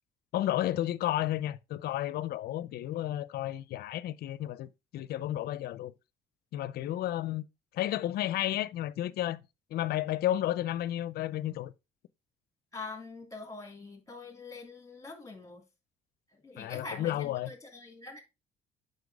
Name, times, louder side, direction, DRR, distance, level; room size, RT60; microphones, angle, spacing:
voice 1, 0.3-5.9 6.5-7.4 7.7-9.4 9.7-11.7 16.6-17.5, left 13 dB, 65° left, 0.6 m, -32 dB
voice 2, 12.7-15.6 16.3-18.2, left 3 dB, 20° left, 2.8 m, -44 dB
7.9 x 5.5 x 3.5 m
cardioid pair, 110°, 17 cm